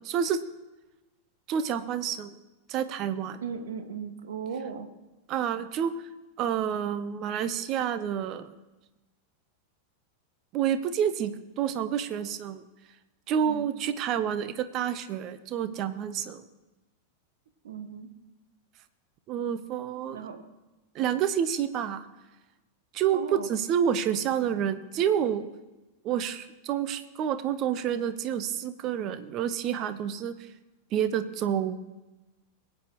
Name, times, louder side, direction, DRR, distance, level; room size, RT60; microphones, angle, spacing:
voice 1, 0.1-0.4 1.5-2.3 2.7-3.4 5.3-5.9 6.4-8.5 10.5-12.7 13.3-16.4 19.3-20.2 20.9-22.1 22.9-25.5 26.0-30.4 30.9-31.8, right 9 dB, 35° right, 12 dB, 0.8 m, -28 dB
voice 2, 3.4-4.9 13.4-13.7 17.6-18.1 20.1-20.4 23.1-23.5, right 6 dB, 65° right, 8 dB, 1.0 m, -37 dB
21.5 x 8.5 x 3.0 m, 1.1 s
figure-of-eight pair, 90°, 0 cm